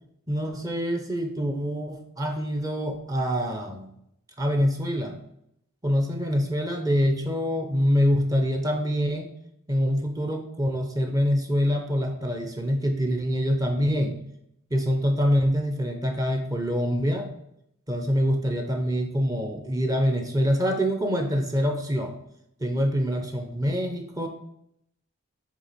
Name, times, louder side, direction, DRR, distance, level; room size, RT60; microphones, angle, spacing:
voice 1, 0.3-3.9 4.4-5.2 5.8-9.3 9.7-14.2 14.7-17.3 17.9-22.1 22.6-24.3, equal, 15° right, 3 dB, 0.6 m, -25 dB
7.4 x 3.3 x 4.0 m, 0.76 s
head